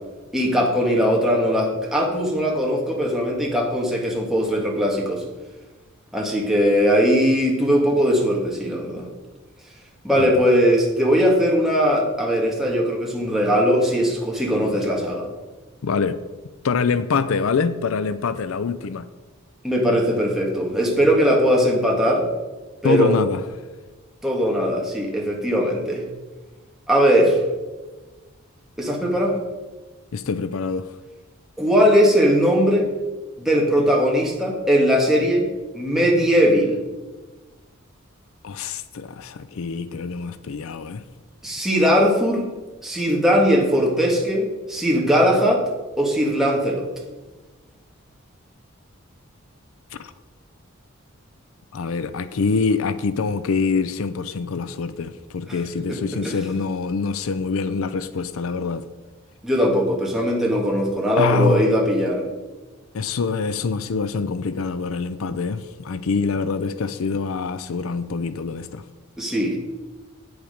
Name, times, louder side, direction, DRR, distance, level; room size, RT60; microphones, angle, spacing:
voice 1, 0.3-5.2 6.1-9.1 10.0-15.3 19.6-22.2 22.8-23.1 24.2-26.0 26.9-27.4 28.8-29.3 31.6-32.9 33.4-35.5 35.7-36.8 41.4-42.5 42.8-45.6 46.0-46.9 55.9-56.4 59.4-62.2 69.2-69.6, equal, ahead, -2 dB, 1.7 m, -19 dB
voice 2, 15.8-16.2 16.6-19.1 22.8-23.4 30.1-30.9 38.4-41.0 49.9-50.1 51.7-58.9 61.2-61.7 62.9-68.8, left 4 dB, 75° left, 14 dB, 0.5 m, -25 dB
8.8 x 8.0 x 5.1 m, 1.2 s
head